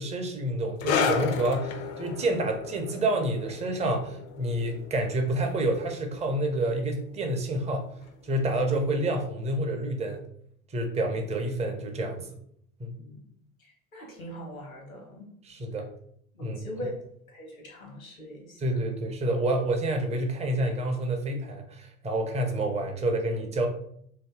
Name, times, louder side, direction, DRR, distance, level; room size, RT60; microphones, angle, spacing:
voice 1, 0.0-7.9 8.2-10.2 10.7-12.4 12.8-12.9 15.4-15.9 16.4-16.6 18.6-23.7, right 1 dB, 15° right, 4 dB, 0.5 m, -28 dB
sound 1, 0.8-7.8 8.1-8.3 9.0-9.1, left 6 dB, 40° left, 0.4 m, -33 dB
voice 2, 13.6-15.3 16.3-17.0 17.3-18.6, equal, 85° left, 0 dB, 1.1 m, -41 dB
2.7 x 2.6 x 3.4 m, 0.66 s
figure-of-eight pair, 80°, 40 cm